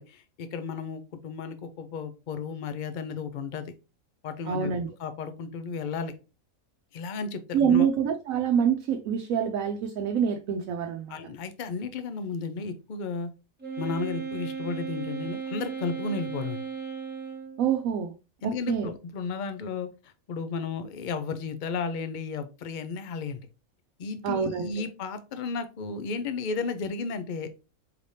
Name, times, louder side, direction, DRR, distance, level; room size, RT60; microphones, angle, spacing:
voice 1, 0.0-3.7 4.2-4.7 5.0-6.1 6.9-7.9 11.1-13.3 13.8-16.6 18.4-23.5 24.0-27.5, left 4 dB, 55° left, 0.5 m, -33 dB
voice 2, 4.5-4.9 7.5-11.2 17.6-18.1 18.4-18.9 24.2-24.7, right 7 dB, 75° right, 1.0 m, -26 dB
Wind instrument woodwind instrument, 13.6-17.7, right 6 dB, 10° right, 1.2 m, -36 dB
4.9 x 3.3 x 2.6 m
omnidirectional pair, 1.4 m